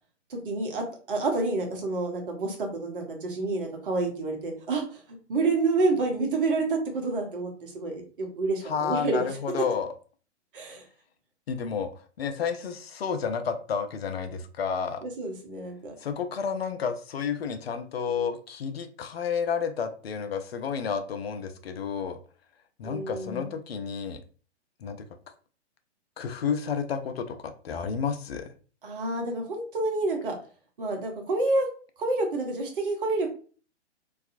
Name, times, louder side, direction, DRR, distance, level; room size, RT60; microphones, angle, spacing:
voice 1, 0.3-9.3 10.5-10.8 15.0-15.9 22.8-23.5 28.8-30.3 30.8-31.7 32.0-33.3, right 3 dB, 50° right, 2 dB, 0.9 m, -28 dB
voice 2, 8.6-9.9 11.5-11.9 12.2-15.0 16.0-22.2 22.8-24.2 24.8-25.1 26.2-28.5, left 6 dB, 60° left, 8 dB, 0.5 m, -31 dB
2.6 x 2.4 x 2.4 m, 0.39 s
figure-of-eight pair, 120°, 34 cm